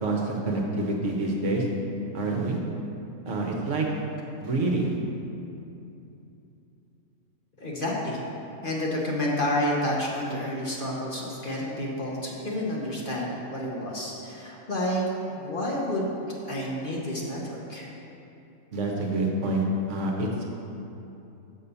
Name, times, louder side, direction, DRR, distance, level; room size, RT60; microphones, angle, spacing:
voice 1, 0.0-1.6 2.1-2.6 3.2-3.9 4.4-4.9 18.7-20.5, right 2 dB, 60° right, 0 dB, 1.2 m, -27 dB
voice 2, 7.6-8.2 8.6-15.0 15.3-16.1 16.4-17.9, left 1 dB, 40° left, -4 dB, 1.1 m, -30 dB
6.1 x 5.5 x 6.8 m, 2.8 s
omnidirectional pair, 1.5 m